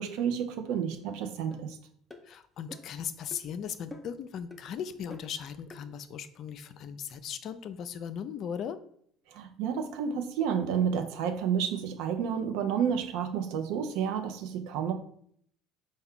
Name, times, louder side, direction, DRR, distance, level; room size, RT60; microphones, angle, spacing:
voice 1, 0.0-1.8 9.3-14.9, right 7 dB, 70° right, 6 dB, 0.5 m, -30 dB
sound 1, 1.5-1.6 2.1-2.3 2.7-3.0 3.3-3.4 3.9-4.2 4.5-4.6 5.1-5.3 5.7-5.8, left 2 dB, 10° left, 0.6 m, -46 dB
voice 2, 2.2-8.8, left 8 dB, 55° left, 12 dB, 0.3 m, -38 dB
4.4 x 2.2 x 3.6 m, 0.65 s
hypercardioid pair, 70°, 0 cm